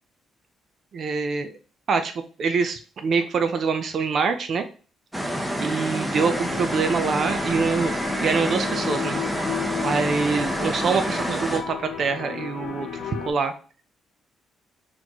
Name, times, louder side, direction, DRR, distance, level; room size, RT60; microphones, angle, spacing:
voice 1, 0.9-1.5 1.9-4.6 5.6-9.2 9.8-13.5, right 5 dB, 55° right, 8 dB, 0.5 m, -25 dB
sound 1, 5.1-11.6, equal, 10° right, 0.8 m, -28 dB
sound 2, 6.2-13.3, left 7 dB, 75° left, 0.8 m, -34 dB
4.1 x 3.0 x 2.9 m, 0.37 s
cardioid pair, 90°, 0 cm